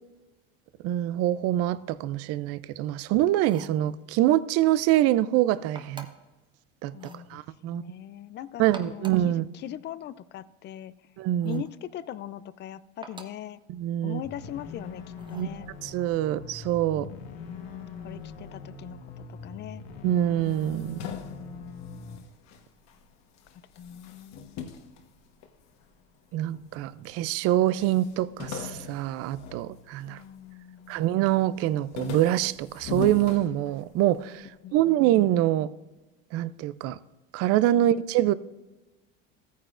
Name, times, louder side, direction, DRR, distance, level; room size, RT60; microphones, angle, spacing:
voice 1, 0.8-6.1 6.8-6.9 7.3-7.8 8.6-9.5 11.2-11.6 13.7-14.2 15.3-15.5 15.8-17.1 20.0-21.0 26.3-30.2 30.9-35.7 36.3-37.0 37.3-38.3, right 13 dB, 50° right, 0.5 m, -25 dB
sound 1, 3.4-3.8 5.7-6.3 6.9-7.3 8.6-9.3 11.4-11.8 13.0-13.5 15.2-15.6, right 4 dB, 15° right, 0.9 m, -47 dB
voice 2, 6.9-9.3 9.6-10.9 11.4-13.6 14.0-15.0 15.3-15.7 16.9-19.8 21.0-22.3 23.8-24.6 30.0-31.1 34.6-35.0 37.7-37.8, left 11 dB, 35° left, 0.5 m, -41 dB
sound 2, 14.2-22.2, left 5 dB, 85° left, 1.4 m, -42 dB
sound 3, 20.4-23.0 23.4-25.9 26.5-27.2 27.4-27.5 27.8-30.4 30.8-31.2 31.6-34.1, left 6 dB, 60° left, 1.3 m, -40 dB
15.0 x 9.3 x 2.5 m
supercardioid pair, 110°, 30 cm